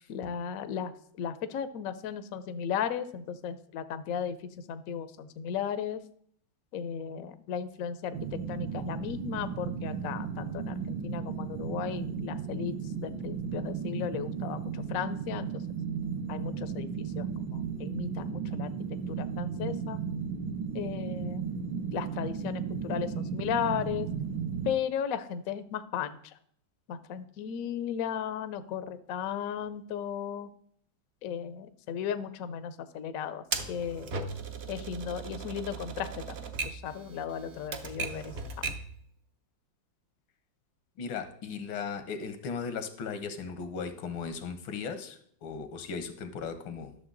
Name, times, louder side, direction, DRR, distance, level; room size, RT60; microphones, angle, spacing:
voice 1, 0.1-0.9 1.2-6.0 6.7-15.5 16.3-18.7 19.1-20.0 20.7-24.1 24.6-26.4 26.9-30.5 31.2-34.1 34.7-36.4 36.6-38.3, left 8 dB, 65° left, 11 dB, 0.8 m, -35 dB
sound 1, 8.1-24.7, right 6 dB, 75° right, 1.5 m, -35 dB
Typewriter, 33.5-38.9, right 4 dB, 55° right, 0.7 m, -37 dB
voice 2, 41.0-47.0, left 5 dB, 85° left, 9 dB, 1.7 m, -37 dB
11.5 x 6.6 x 3.9 m, 0.65 s
omnidirectional pair, 2.1 m